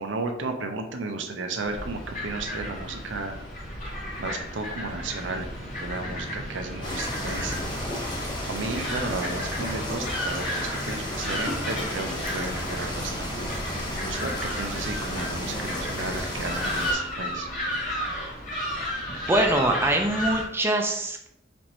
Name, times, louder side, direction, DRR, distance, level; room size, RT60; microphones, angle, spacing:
voice 1, 0.0-3.4 4.2-5.5 5.8-7.5 8.5-13.5 14.0-17.5, right 3 dB, 85° right, 5 dB, 0.6 m, -33 dB
sound 1, 1.6-20.5, equal, 45° left, 1.4 m, -33 dB
sound 2, 6.8-16.9, left 1 dB, 25° left, 1.0 m, -32 dB
sound 3, 12.0-18.2, right 1 dB, 75° left, 1.4 m, -48 dB
voice 2, 19.1-21.3, right 1 dB, 15° right, 2 dB, 0.4 m, -24 dB
4.4 x 2.6 x 4.2 m, 0.79 s
head